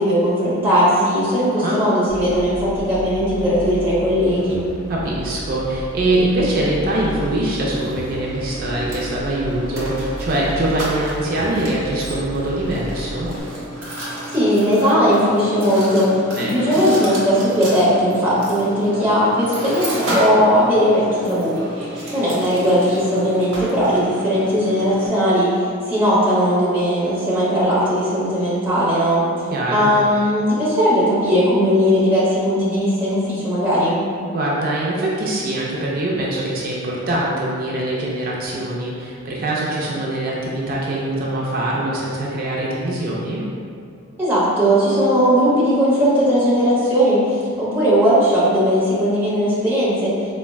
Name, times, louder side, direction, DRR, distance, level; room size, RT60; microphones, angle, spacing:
voice 1, 0.0-4.6 14.3-21.5 22.1-34.0 44.2-50.2, equal, 10° right, -10 dB, 0.8 m, -18 dB
sound 1, 2.1-13.4, equal, 90° left, 0.5 m, -34 dB
voice 2, 4.9-13.3 16.4-16.5 29.5-29.9 34.3-43.4, right 1 dB, 40° right, -4 dB, 0.4 m, -23 dB
Mechanisms, 6.9-25.1, right 1 dB, 60° right, 0.8 m, -31 dB
4.2 x 2.1 x 2.2 m, 2.4 s
head